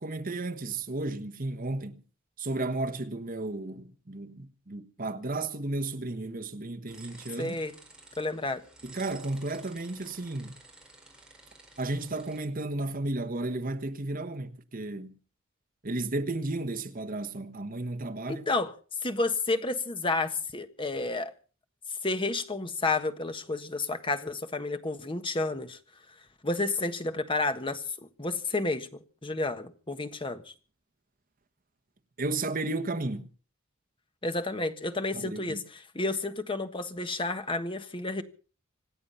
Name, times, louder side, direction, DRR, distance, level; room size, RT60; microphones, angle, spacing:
voice 1, 0.0-2.0 2.4-7.6 8.8-10.5 11.8-15.1 15.8-18.5 32.2-33.3 35.1-35.6, right 2 dB, 45° right, 1.3 m, -33 dB
sound 1, 6.9-12.4, right 2 dB, 5° right, 5.0 m, -52 dB
voice 2, 7.4-7.7 8.2-8.6 18.3-18.7 19.0-21.3 22.0-25.8 26.4-27.8 28.2-28.9 29.2-30.5 34.2-38.2, left 2 dB, 25° left, 1.5 m, -31 dB
26.0 x 9.5 x 5.6 m
head